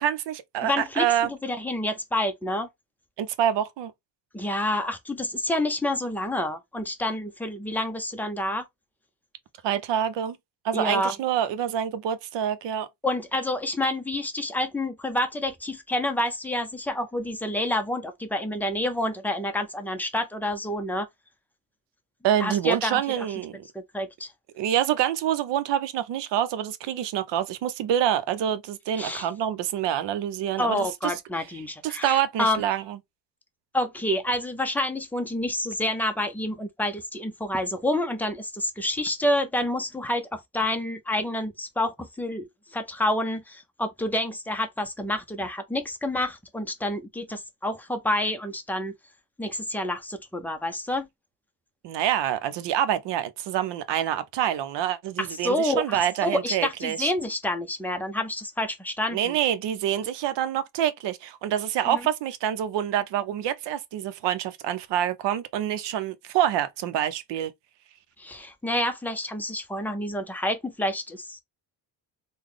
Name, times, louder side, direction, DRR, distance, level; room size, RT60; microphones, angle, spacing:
voice 1, 0.0-1.3 3.2-3.9 9.6-10.4 10.6-12.9 22.2-23.6 24.5-30.9 31.8-33.0 51.8-57.1 59.1-67.5, right 10 dB, 75° right, 0.7 m, -26 dB
voice 2, 0.6-2.7 4.3-8.6 10.7-11.1 13.0-21.1 22.4-23.2 23.9-24.3 29.0-29.3 30.6-32.6 33.7-48.9 49.4-51.1 55.2-59.3 61.9-62.0 68.2-71.4, left 1 dB, 5° left, 0.5 m, -28 dB
3.8 x 2.2 x 3.2 m
cardioid pair, 140°, 42 cm